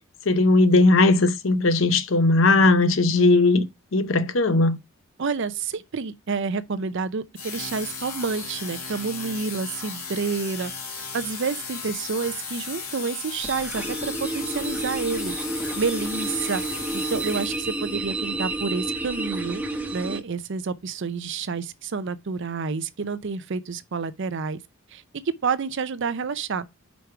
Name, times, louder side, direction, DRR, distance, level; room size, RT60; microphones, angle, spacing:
voice 1, 0.3-3.6 3.9-4.8, left 2 dB, 60° left, 0.7 m, -18 dB
voice 2, 5.2-15.4 15.8-19.6 19.9-24.6 24.9-26.7, right 5 dB, 55° right, 0.5 m, -29 dB
sound 1, 7.3-17.9, left 4 dB, 85° left, 2.6 m, -35 dB
sound 2, 13.4-20.2, right 2 dB, 5° right, 0.8 m, -30 dB
5.2 x 4.6 x 4.6 m
head